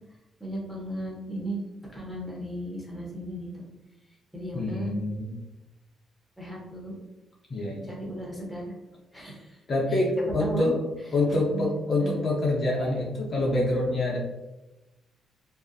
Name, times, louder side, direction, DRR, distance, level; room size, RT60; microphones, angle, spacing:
voice 1, 0.4-1.6 1.9-3.6 4.3-4.9 6.4-6.9 7.9-8.7 9.1-9.6 10.4-10.7 11.3-11.7 12.0-12.2, right 1 dB, 5° left, -3 dB, 0.8 m, -35 dB
voice 2, 4.5-5.4 7.5-7.9 9.7-10.8 11.1-14.2, left 2 dB, 45° left, -3 dB, 0.5 m, -26 dB
2.4 x 2.0 x 2.5 m, 1.0 s
cardioid pair, 90°, 0 cm